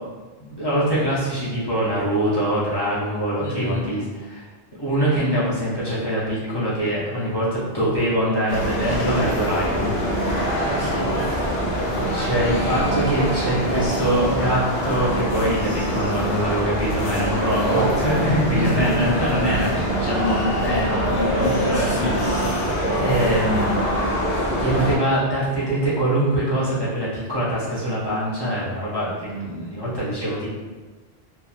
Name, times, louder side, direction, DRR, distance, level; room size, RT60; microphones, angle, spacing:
voice 1, 0.4-4.4 4.8-9.9 12.1-22.3 23.0-23.7 24.6-30.5, equal, 30° left, -9 dB, 0.6 m, -23 dB
voice 2, 3.4-3.8 10.6-11.8 18.5-19.1 21.7-22.2, right 1 dB, 25° right, -7 dB, 0.6 m, -29 dB
sound 1, 8.5-25.0, right 1 dB, 75° left, 0.9 m, -24 dB
2.8 x 2.2 x 2.4 m, 1.3 s
omnidirectional pair, 1.1 m